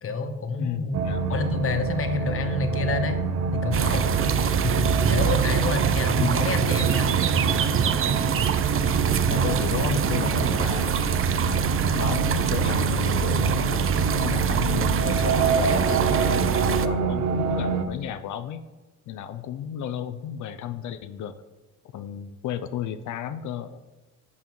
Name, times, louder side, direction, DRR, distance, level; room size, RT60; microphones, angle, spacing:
voice 1, 0.0-3.2 3.5-4.1 4.6-7.0 11.9-12.4, left 3 dB, 45° left, 7 dB, 1.1 m, -29 dB
voice 2, 0.6-1.3 6.2-6.9 9.3-10.9 11.9-13.6 14.2-18.6 19.1-21.3 21.9-23.8, left 9 dB, 75° left, 11 dB, 0.5 m, -33 dB
sound 1, 0.9-17.8, right 4 dB, 65° right, 0.9 m, -27 dB
sound 2, 3.7-16.9, right 7 dB, 45° right, 0.6 m, -24 dB
11.0 x 6.9 x 3.1 m, 1.2 s
cardioid pair, 90°, 30 cm